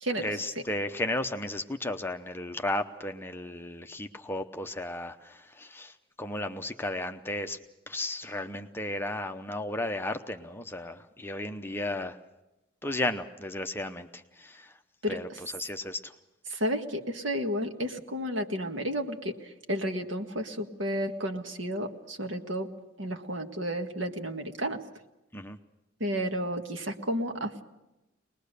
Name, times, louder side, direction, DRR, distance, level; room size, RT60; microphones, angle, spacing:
voice 1, 0.2-5.9 6.2-7.6 7.9-12.2 12.8-14.1 14.4-14.6 15.1-16.1 25.3-25.6, left 1 dB, 10° left, 7 dB, 0.8 m, -34 dB
voice 2, 15.0-15.4 16.5-19.3 19.7-22.7 23.0-24.8 26.0-27.6, equal, 65° right, 5 dB, 1.7 m, -32 dB
23.5 x 20.5 x 6.8 m, 0.97 s
head